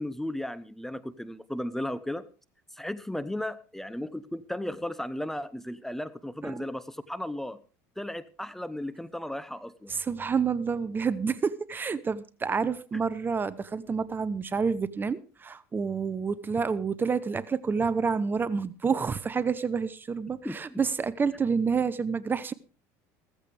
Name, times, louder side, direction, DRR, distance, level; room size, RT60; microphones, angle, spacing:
voice 1, 0.0-2.2 2.7-7.6 8.0-9.9 20.4-20.8, left 1 dB, 5° left, 0.8 m, -35 dB
voice 2, 9.9-22.5, right 5 dB, 25° right, 0.9 m, -28 dB
15.5 x 14.5 x 3.4 m
supercardioid pair, 100°, 8 cm